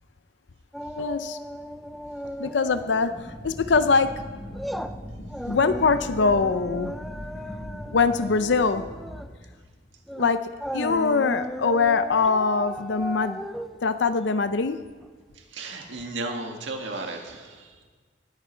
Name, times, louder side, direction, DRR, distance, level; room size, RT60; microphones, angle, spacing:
sound 1, 0.7-3.2 3.5-3.7 4.1-15.1 15.4-15.5, equal, ahead, 0.5 m, -36 dB
voice 1, 1.0-1.4 2.4-4.2 5.5-6.9 7.9-8.8 10.1-13.4 13.8-14.8, left 4 dB, 70° left, 11 dB, 0.6 m, -23 dB
sound 2, 3.1-9.2, equal, 20° left, 3.7 m, -39 dB
voice 2, 15.3-17.8, right 2 dB, 85° right, 3 dB, 1.7 m, -35 dB
19.0 x 11.0 x 4.5 m, 1.5 s
head